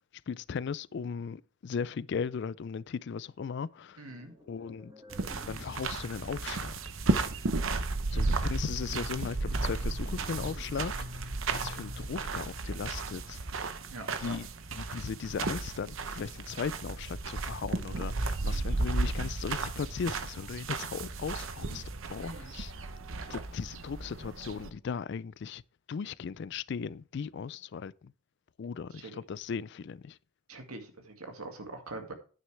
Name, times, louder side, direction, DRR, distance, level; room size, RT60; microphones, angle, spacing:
voice 1, 0.3-4.1 4.5-4.9 5.5-6.9 8.1-13.4 14.2-21.8 22.1-22.7 23.3-25.6 25.9-28.1 28.6-30.2, left 6 dB, 50° left, 0.3 m, -37 dB
voice 2, 4.0-4.3 8.1-8.4 13.9-14.4 18.4-18.7 22.2-22.6 28.9-29.1 30.5-32.1, right 2 dB, 80° right, 2.2 m, -44 dB
sound 1, 4.1-12.8, equal, 20° right, 1.8 m, -52 dB
sound 2, 5.1-24.7, right 3 dB, 60° right, 0.9 m, -34 dB
9.5 x 9.2 x 3.3 m
head